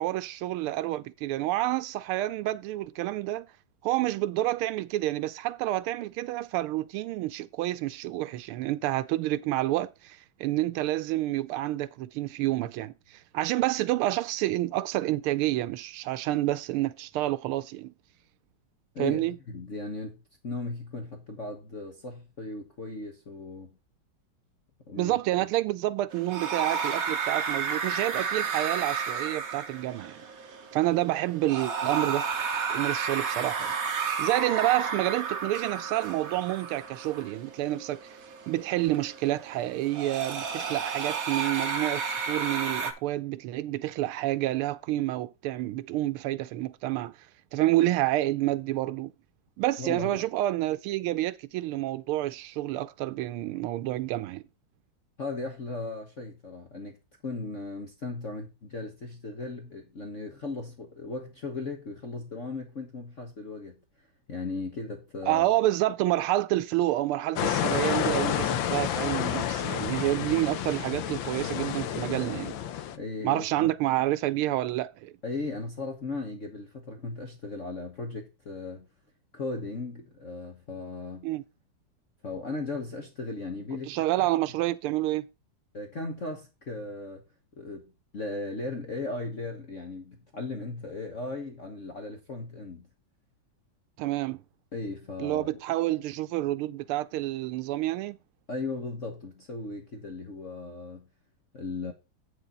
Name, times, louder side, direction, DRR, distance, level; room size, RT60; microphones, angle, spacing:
voice 1, 0.0-3.5 3.8-17.9 19.0-19.4 25.0-30.2 30.7-32.3 32.7-33.7 34.2-38.2 38.5-47.1 47.5-49.1 49.6-54.4 65.3-72.6 73.2-75.1 81.2-81.4 83.9-85.3 94.0-94.4 95.2-98.2, right 16 dB, 85° right, 1.5 m, -28 dB
voice 2, 18.9-23.8 24.9-25.2 49.8-50.2 55.2-57.0 57.2-63.8 64.3-65.4 72.9-73.7 75.2-78.9 79.3-81.3 82.2-84.3 85.7-87.3 87.6-92.9 94.7-95.5 98.5-101.1 101.5-101.9, left 3 dB, 40° left, 1.4 m, -37 dB
sound 1, 26.1-42.9, right 6 dB, 45° right, 1.4 m, -32 dB
sound 2, 67.4-73.0, left 10 dB, 70° left, 1.4 m, -30 dB
8.5 x 6.5 x 3.9 m
omnidirectional pair, 2.3 m